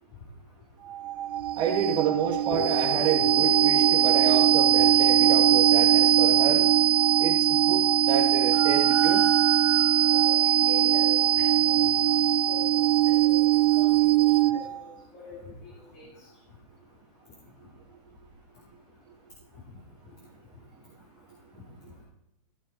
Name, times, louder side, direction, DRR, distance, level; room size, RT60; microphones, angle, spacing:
sound 1, 0.9-14.8, right 12 dB, 70° right, 0.5 m, -21 dB
voice 1, 1.5-6.7 7.2-9.3, right 7 dB, 20° right, -1 dB, 2.8 m, -29 dB
sound 2, 2.5-10.2, left 5 dB, 65° left, 4.1 m, -40 dB
sound 3, 8.5-10.3, right 3 dB, ahead, 2.7 m, -36 dB
voice 2, 10.0-12.0 12.5-12.6 13.2-13.4 13.7-14.0 14.5-14.9 15.3-16.0, left 2 dB, 35° left, -3 dB, 2.8 m, -43 dB
15.5 x 6.5 x 4.5 m, 0.87 s
hypercardioid pair, 145°, 21 cm